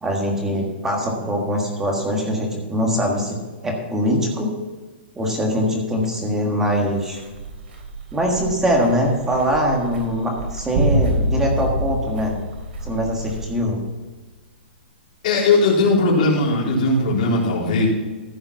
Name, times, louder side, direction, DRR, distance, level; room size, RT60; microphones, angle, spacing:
voice 1, 0.0-3.4 3.6-4.5 5.2-7.2 8.1-12.3 12.8-13.8, equal, 5° right, 1 dB, 1.5 m, -22 dB
sound 1, 6.7-13.6, right 3 dB, 70° right, 3.3 m, -36 dB
sound 2, 10.8-13.3, equal, 40° right, 2.6 m, -23 dB
voice 2, 15.2-17.9, left 2 dB, 45° left, -4 dB, 3.8 m, -18 dB
15.0 x 5.5 x 5.9 m, 1.3 s
hypercardioid pair, 175°, 6 cm